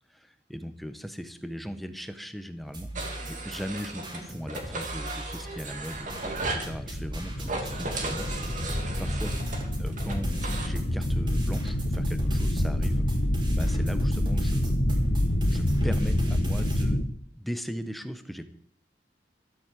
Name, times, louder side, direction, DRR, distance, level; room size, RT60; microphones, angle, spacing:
voice 1, 0.1-2.9 3.3-6.1 6.5-8.3 8.8-9.4 9.7-13.1 13.5-14.8 15.5-17.0 17.3-18.5, equal, ahead, 9 dB, 1.1 m, -38 dB
sound 1, 2.6-16.8, right 1 dB, 25° right, 3.2 m, -41 dB
sound 2, 2.9-4.2 4.5-6.7 7.4-10.7, right 2 dB, 45° right, 2.2 m, -36 dB
sound 3, 5.8-17.0, left 1 dB, 55° left, 1.5 m, -27 dB
13.0 x 8.7 x 7.7 m, 0.67 s
head